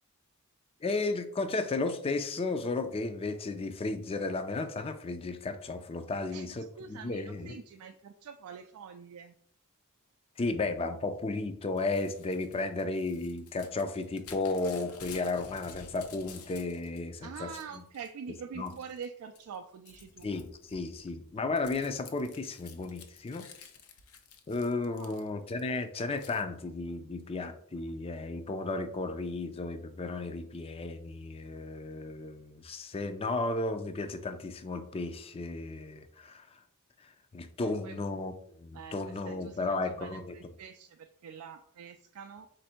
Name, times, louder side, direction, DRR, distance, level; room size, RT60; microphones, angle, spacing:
voice 1, 0.8-7.6 10.4-17.8 18.6-18.7 20.2-23.5 24.5-36.6 37.0-38.3 38.6-40.3, left 3 dB, 25° left, 9 dB, 0.4 m, -34 dB
voice 2, 6.8-9.3 17.2-20.3 24.8-25.4 37.6-38.0 38.7-42.5, right 6 dB, 75° right, 6 dB, 0.3 m, -45 dB
Crumpling crinkling / Tearing, 11.8-17.0 17.3-18.1 18.6-19.1 19.3-25.6 26.2-26.4, left 6 dB, 80° left, 0.6 m, -52 dB
4.2 x 2.6 x 4.3 m, 0.66 s
head